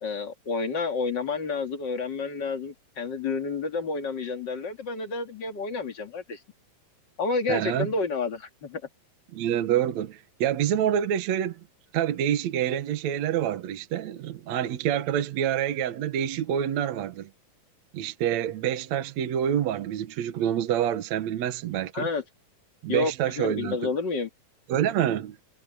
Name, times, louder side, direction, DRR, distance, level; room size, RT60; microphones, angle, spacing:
voice 1, 0.0-6.4 7.2-8.8 21.9-22.2 22.9-24.3, left 4 dB, 35° left, 2.3 m, -30 dB
voice 2, 7.5-7.9 9.3-11.6 11.9-17.3 17.9-22.1 22.8-23.9 24.7-25.4, right 10 dB, 65° right, 2.3 m, -27 dB
omnidirectional pair, 3.8 m